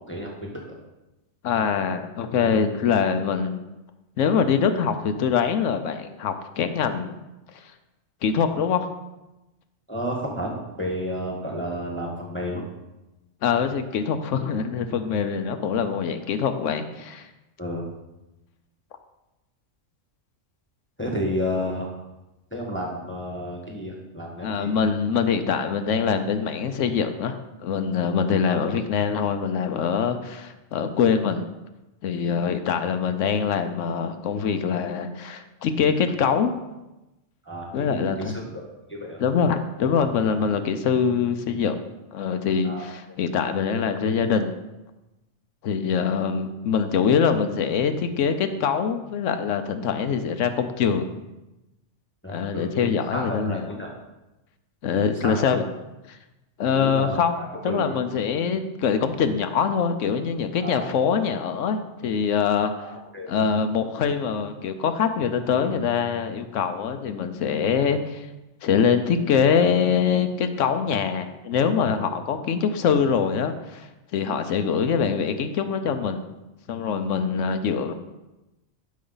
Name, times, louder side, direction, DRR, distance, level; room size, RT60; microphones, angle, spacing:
voice 1, 0.1-0.8 9.9-12.6 17.6-17.9 21.0-21.9 22.5-24.8 28.5-28.6 37.4-39.2 42.6-42.9 52.2-53.9 54.9-55.5 56.7-58.0 60.6-60.9 62.8-63.3 72.0-72.1 74.3-74.4 77.3-77.4, equal, 10° left, -2 dB, 1.3 m, -32 dB
voice 2, 1.4-3.6 4.2-7.1 7.5-7.7 8.2-8.9 13.4-17.3 24.4-31.5 32.0-36.5 37.7-38.3 39.2-41.8 42.1-44.6 45.6-51.1 52.3-53.6 54.8-55.6 56.1-56.2 56.6-62.7 63.3-68.3 68.6-76.2 76.7-77.9, left 6 dB, 85° left, 8 dB, 1.1 m, -24 dB
11.5 x 5.4 x 3.9 m, 1.0 s
omnidirectional pair, 1.3 m